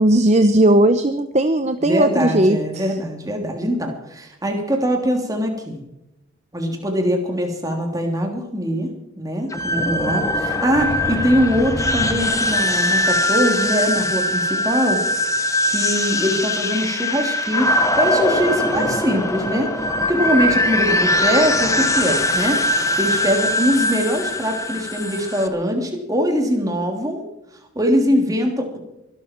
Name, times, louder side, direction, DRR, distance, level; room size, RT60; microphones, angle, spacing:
voice 1, 0.0-2.9, right 1 dB, 30° right, 9 dB, 0.8 m, -17 dB
voice 2, 1.8-5.8 6.5-8.9 9.2-15.0 15.6-19.7 20.1-22.6 23.0-27.2 27.7-28.8, equal, 15° right, 3 dB, 3.1 m, -22 dB
sound 1, 9.5-25.5, left 1 dB, 15° left, 1.1 m, -21 dB
sound 2, 10.7-12.8 13.2-13.6, equal, 70° right, 4.2 m, -30 dB
24.0 x 12.5 x 4.6 m, 0.90 s
head